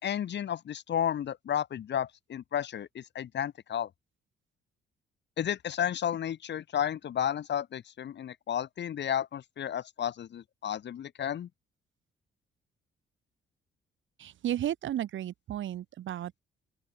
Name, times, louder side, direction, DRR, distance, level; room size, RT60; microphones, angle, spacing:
voice 1, 0.0-3.9 5.4-11.5, left 9 dB, 65° left, 3.7 m, -32 dB
voice 2, 14.2-16.4, right 11 dB, 75° right, 6.2 m, -33 dB
open air
cardioid pair, 90°, 20 cm